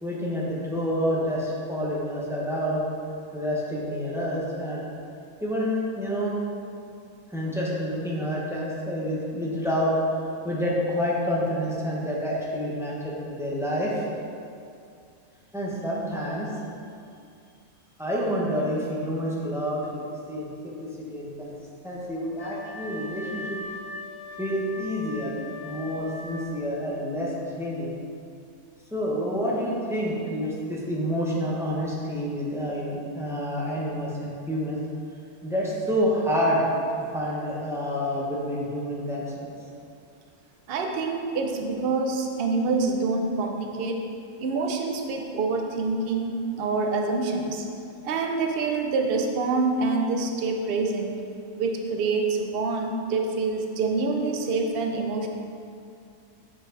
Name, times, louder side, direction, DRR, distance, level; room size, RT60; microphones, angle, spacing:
voice 1, 0.0-2.9 3.3-4.8 5.4-6.3 7.3-10.0 10.4-14.0 15.5-16.5 18.0-21.5 21.8-23.6 24.4-25.4 25.6-27.9 28.9-34.8 35.4-36.6 37.1-39.5, equal, ahead, -6 dB, 0.9 m, -28 dB
Wind instrument woodwind instrument, 22.4-26.8, left 2 dB, 80° left, 1.2 m, -39 dB
voice 2, 40.7-44.1 44.4-47.6 48.0-51.2 51.6-55.3, right 3 dB, 55° right, 3 dB, 0.7 m, -26 dB
7.3 x 4.9 x 3.9 m, 2.4 s
omnidirectional pair, 1.6 m